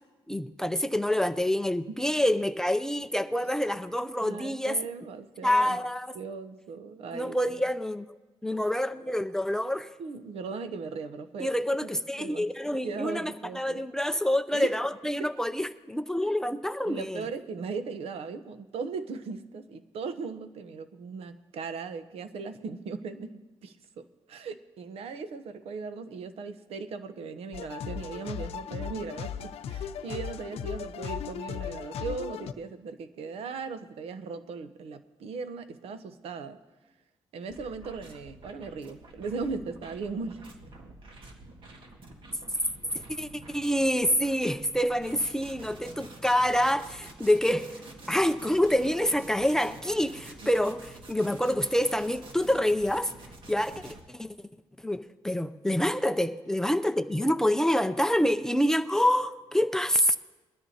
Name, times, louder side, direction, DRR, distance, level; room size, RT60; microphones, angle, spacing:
voice 1, 0.3-4.8 5.4-6.1 7.1-8.1 8.4-9.9 11.4-17.2 43.1-47.7 48.1-53.1 53.5-54.3 54.8-60.2, left 1 dB, 5° left, 0.4 m, -27 dB
voice 2, 4.2-5.8 6.1-7.6 10.0-11.5 12.2-12.5 12.8-13.8 14.5-14.7 15.0-15.3 16.8-36.6 37.3-40.5 50.4-50.5, right 4 dB, 80° right, 0.9 m, -38 dB
sound 1, 27.5-32.5, left 8 dB, 80° left, 0.6 m, -37 dB
sound 2, 37.5-54.0, right 2 dB, 55° right, 1.9 m, -48 dB
21.5 x 13.0 x 2.8 m
cardioid pair, 125°, 10 cm